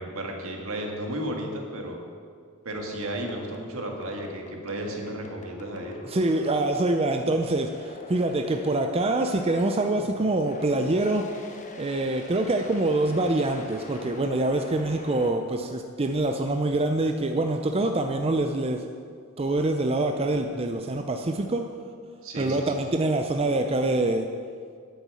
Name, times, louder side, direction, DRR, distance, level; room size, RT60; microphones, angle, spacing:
voice 1, 0.0-2.0 2.6-6.0 22.2-22.9, right 1 dB, 75° right, 1 dB, 1.8 m, -33 dB
sound 1, 2.7-15.3, left 2 dB, 35° left, 1.0 m, -44 dB
voice 2, 6.1-11.3 11.8-18.8 19.4-21.6 22.4-24.3, right 2 dB, 30° right, 5 dB, 0.5 m, -25 dB
9.3 x 7.2 x 8.5 m, 2.1 s
head